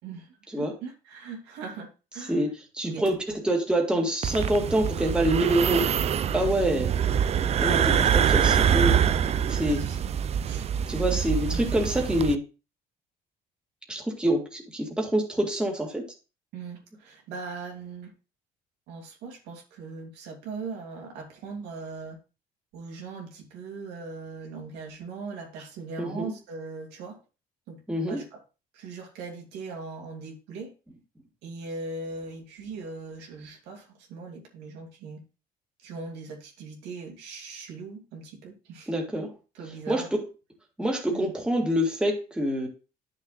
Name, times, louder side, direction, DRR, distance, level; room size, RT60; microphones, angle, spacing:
voice 1, 0.0-2.4 2.8-3.1 3.9-4.1 6.7-6.9 9.6-10.0 10.4-11.6 16.5-18.1 18.9-22.2 22.7-27.2 27.7-27.8 28.1-28.4 28.7-30.7 31.4-35.2 35.8-38.9 39.5-40.1 41.1-41.3, right 4 dB, 90° right, 1 dB, 2.6 m, -40 dB
voice 2, 2.3-5.9 6.3-6.9 7.6-9.0 9.5-9.8 10.9-12.4 13.9-16.0 26.0-26.3 27.9-28.2 38.9-39.3 39.9-40.2 40.8-42.7, right 1 dB, 5° right, 1 dB, 2.0 m, -26 dB
sound 1, 4.2-12.3, right 8 dB, 40° right, 0.4 m, -25 dB
10.5 x 6.6 x 2.4 m, 0.31 s
cardioid pair, 110°, 17 cm